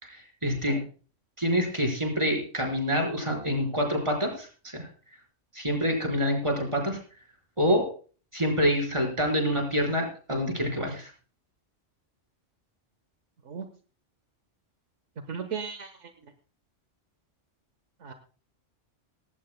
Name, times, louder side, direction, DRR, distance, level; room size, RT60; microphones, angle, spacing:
voice 1, 0.0-0.8 1.4-4.9 5.5-7.0 7.6-7.9 8.3-11.1, equal, 25° right, 0 dB, 4.6 m, -27 dB
voice 2, 15.3-16.3 18.0-18.1, right 6 dB, 75° right, 7 dB, 1.4 m, -37 dB
18.5 x 16.5 x 2.2 m, 0.39 s
omnidirectional pair, 1.3 m